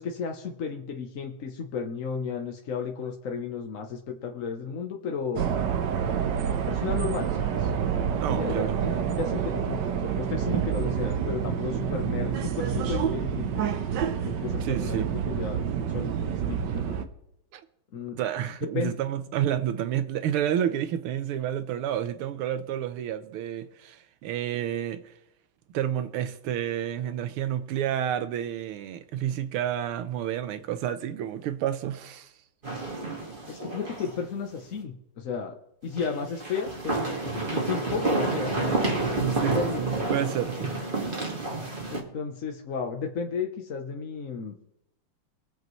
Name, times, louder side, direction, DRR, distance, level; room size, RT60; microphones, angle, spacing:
voice 1, 0.0-5.5 6.5-7.7 8.3-13.6 14.3-16.2 16.5-17.0 17.9-18.2 18.6-18.9 33.5-35.6 35.8-38.8 39.2-39.9 41.9-44.5, left 5 dB, 50° left, 1.0 m, -33 dB
sound 1, 5.4-17.1, right 8 dB, 65° right, 1.3 m, -28 dB
voice 2, 8.2-8.8 14.6-15.1 17.5-17.6 18.2-25.0 25.7-32.3 39.1-40.7, right 10 dB, 85° right, 1.7 m, -30 dB
sound 2, 32.6-34.2 34.5-34.6 35.9-42.0, right 2 dB, 25° right, 2.0 m, -29 dB
23.0 x 7.8 x 3.1 m
omnidirectional pair, 2.4 m